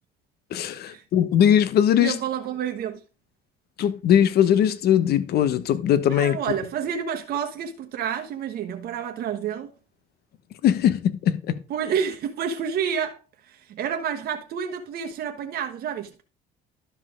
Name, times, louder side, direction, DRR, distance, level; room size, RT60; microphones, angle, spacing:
voice 1, 0.5-2.2 3.8-6.4 10.6-11.6, left 9 dB, 65° left, 1.2 m, -20 dB
voice 2, 2.0-3.0 6.1-9.7 11.7-13.2 13.4-16.2, right 8 dB, 60° right, 1.2 m, -29 dB
12.0 x 5.6 x 3.7 m
supercardioid pair, 85°, 18 cm